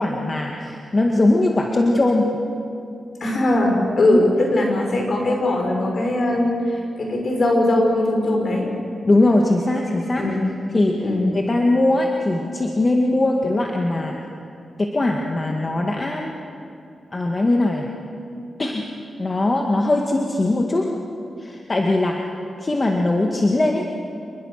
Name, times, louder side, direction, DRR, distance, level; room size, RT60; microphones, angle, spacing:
voice 1, 0.0-2.3 4.1-4.3 9.1-10.4 10.7-11.1 11.3-14.2 14.8-16.3 17.1-17.9 18.6-18.9 19.2-21.0 21.4-22.3 22.6-23.9, left 2 dB, 35° left, 1 dB, 2.0 m, -20 dB
voice 2, 3.2-8.7 10.2-10.4 11.0-11.3, left 1 dB, 55° left, 1 dB, 6.1 m, -20 dB
27.5 x 21.0 x 6.7 m, 2.6 s
cardioid pair, 80°, 0 cm